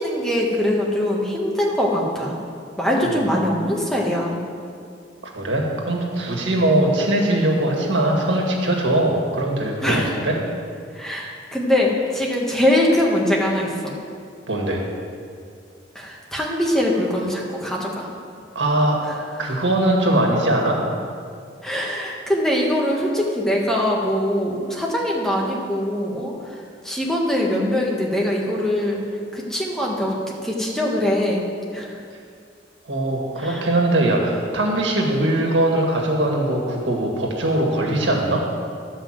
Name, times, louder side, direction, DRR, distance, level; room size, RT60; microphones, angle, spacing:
voice 1, 0.0-2.4 2.8-4.4 9.8-10.1 10.9-13.9 15.9-18.1 19.0-19.1 19.4-19.6 21.6-29.0 29.3-31.4 31.7-32.0 33.4-33.7, left 1 dB, 5° left, -3 dB, 1.5 m, -22 dB
voice 2, 5.3-10.4 14.5-14.8 18.6-19.0 19.4-20.8 32.9-38.5, right 1 dB, 80° right, 0 dB, 1.9 m, -21 dB
11.0 x 5.4 x 7.6 m, 2.3 s
head